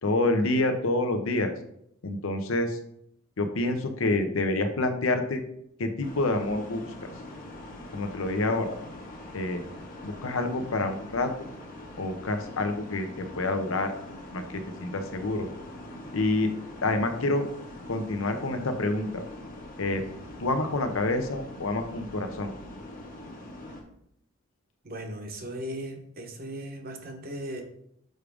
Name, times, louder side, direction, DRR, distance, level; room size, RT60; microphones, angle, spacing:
voice 1, 0.0-1.5 2.0-2.8 3.4-5.4 5.8-6.8 7.9-8.8 9.3-9.6 10.0-11.3 12.0-13.9 14.3-15.5 16.1-16.5 16.8-17.5 17.9-19.2 19.8-20.0 20.4-22.5, left 2 dB, 85° left, 7 dB, 0.8 m, -27 dB
sound 1, 6.0-23.8, left 1 dB, 40° left, 1.1 m, -43 dB
voice 2, 24.8-27.6, right 1 dB, 45° right, 4 dB, 1.0 m, -37 dB
6.5 x 4.9 x 3.4 m, 0.73 s
head